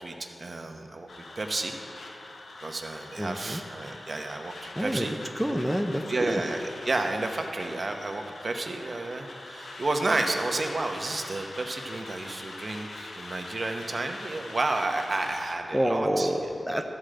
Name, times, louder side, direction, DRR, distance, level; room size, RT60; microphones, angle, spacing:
voice 1, 0.0-1.7 2.6-5.1 6.1-6.6 6.8-16.3, right 2 dB, 45° right, 4 dB, 0.9 m, -31 dB
sound 1, 1.1-15.5, left 2 dB, 80° left, 1.0 m, -43 dB
voice 2, 3.2-3.6 4.8-5.1 5.4-6.4 15.7-16.8, equal, ahead, 3 dB, 0.5 m, -28 dB
14.0 x 5.0 x 7.7 m, 2.9 s
wide cardioid pair, 105°, 0 cm